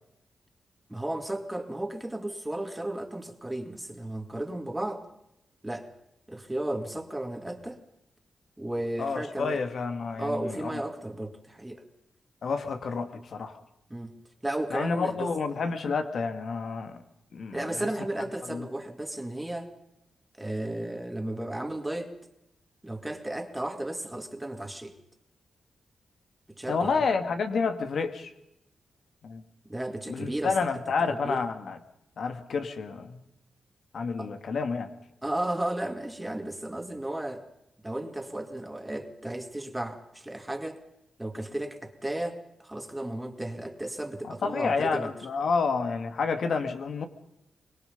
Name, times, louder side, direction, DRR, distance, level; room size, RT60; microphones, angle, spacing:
voice 1, 0.9-5.0 5.6-5.9 6.3-7.8 8.6-9.6 10.2-11.8 13.9-14.1 14.4-15.3 17.5-19.7 20.4-22.1 22.8-24.9 26.5-27.0 29.6-30.8 31.1-31.4 34.2-34.3 35.2-37.5 37.8-40.8 41.2-45.1, right 1 dB, 10° right, 6 dB, 2.3 m, -34 dB
voice 2, 9.0-10.7 12.4-13.6 14.7-17.0 17.3-17.9 18.5-18.7 26.7-28.3 29.2-29.4 30.1-31.8 32.2-33.2 33.9-34.9 44.2-47.0, left 4 dB, 65° left, 8 dB, 2.0 m, -29 dB
24.5 x 20.5 x 5.4 m, 0.84 s
cardioid pair, 85°, 0 cm